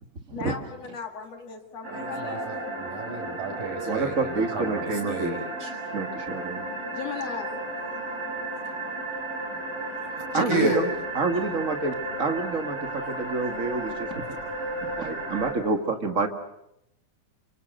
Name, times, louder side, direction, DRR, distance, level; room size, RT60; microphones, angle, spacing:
voice 1, 0.3-2.7 6.9-7.7 10.3-10.8, left 6 dB, 55° left, 4 dB, 3.2 m, -36 dB
sound 1, 1.8-15.5, right 2 dB, 50° right, 6.5 m, -34 dB
voice 2, 1.9-5.7 9.4-9.6 10.0-10.1 10.5-10.8 13.0-13.1 14.4-14.6 15.1-15.2 16.1-16.3, right 2 dB, 80° right, 3 dB, 7.5 m, -32 dB
voice 3, 3.9-5.4 5.9-6.7 10.1-10.9 11.1-14.4 14.8-16.3, right 3 dB, 30° right, 5 dB, 2.0 m, -28 dB
29.5 x 25.0 x 6.8 m, 0.81 s
omnidirectional pair, 3.8 m